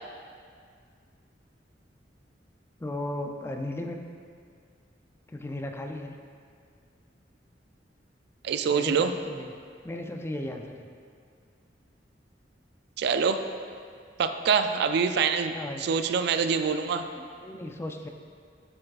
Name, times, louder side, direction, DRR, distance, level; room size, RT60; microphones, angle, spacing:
voice 1, 2.8-4.0 5.3-6.2 8.7-9.5 9.8-10.9 15.5-15.8 17.1-18.1, left 1 dB, 15° left, 4 dB, 0.4 m, -36 dB
voice 2, 8.4-9.1 13.0-13.4 14.2-15.5 15.8-17.1, right 6 dB, 65° right, 8 dB, 0.3 m, -25 dB
6.9 x 6.6 x 2.4 m, 2.1 s
head